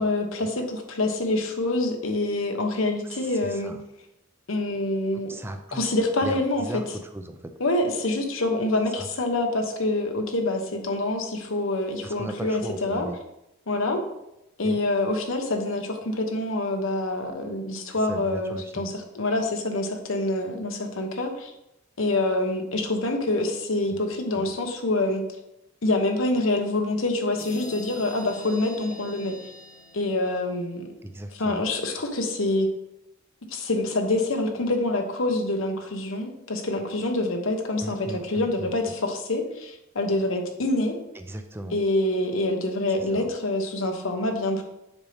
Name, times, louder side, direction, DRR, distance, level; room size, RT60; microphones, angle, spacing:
voice 1, 0.0-3.7 4.5-5.3 5.7-6.6 7.6-13.1 13.7-14.0 14.6-21.5 22.0-25.2 25.8-29.4 29.9-30.9 31.4-32.7 33.5-40.9 41.7-44.6, left 2 dB, 90° left, 4 dB, 1.1 m, -26 dB
voice 2, 3.0-3.8 5.1-5.9 6.2-7.5 9.0-9.1 12.0-13.2 14.6-14.8 17.8-18.9 24.3-24.5 31.0-31.7 37.8-38.9 41.1-41.8 42.9-43.3, right 1 dB, 10° right, 6 dB, 0.5 m, -37 dB
sound 1, 27.4-30.9, left 2 dB, 40° left, 0.9 m, -45 dB
7.2 x 5.3 x 3.4 m, 0.87 s
head